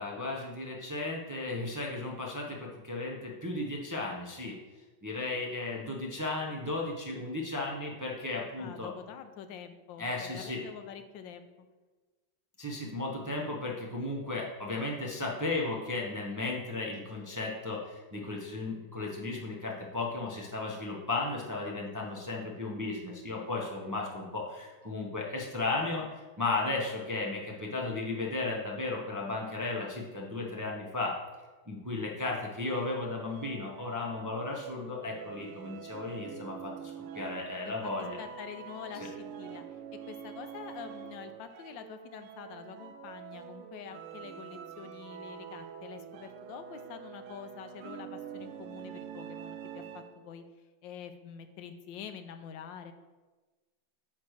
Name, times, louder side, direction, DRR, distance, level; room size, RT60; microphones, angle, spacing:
voice 1, 0.0-4.6 5.0-8.9 10.0-10.6 12.6-31.2 31.7-38.2, left 2 dB, 25° right, -2 dB, 0.4 m, -35 dB
voice 2, 8.6-11.7 37.6-37.9 38.2-39.8 40.1-50.4 50.8-52.9, left 8 dB, 80° left, 8 dB, 1.3 m, -46 dB
sound 1, 32.6-50.3, right 8 dB, 85° right, 1.4 m, -46 dB
9.4 x 3.3 x 6.4 m, 1.2 s
omnidirectional pair, 2.1 m